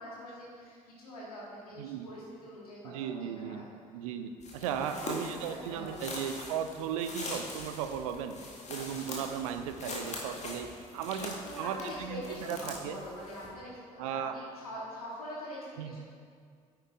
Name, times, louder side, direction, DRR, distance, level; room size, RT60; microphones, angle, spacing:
voice 1, 0.0-3.6 4.6-5.1 5.5-6.0 11.4-16.0, equal, 80° left, -5 dB, 2.1 m, -44 dB
voice 2, 2.8-3.6 3.9-8.4 8.7-10.7 10.9-12.2 12.5-13.0 14.0-14.4 15.8-16.0, right 8 dB, 65° right, 8 dB, 0.6 m, -36 dB
sound 1, 4.4-13.5, left 2 dB, 35° left, 1.9 m, -42 dB
9.3 x 9.0 x 3.6 m, 2.1 s
figure-of-eight pair, 50°, 19 cm